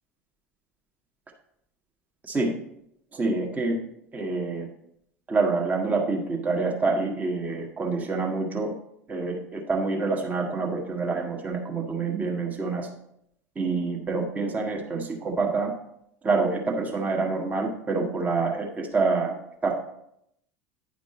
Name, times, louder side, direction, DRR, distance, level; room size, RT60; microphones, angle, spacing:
voice 1, 2.2-2.5 3.1-3.8 4.1-4.7 5.3-8.7 9.1-12.9 13.5-15.7 16.2-19.3 19.6-19.7, right 3 dB, 20° right, 1 dB, 1.3 m, -27 dB
9.9 x 5.1 x 4.2 m, 0.76 s
figure-of-eight pair, 75°, 8 cm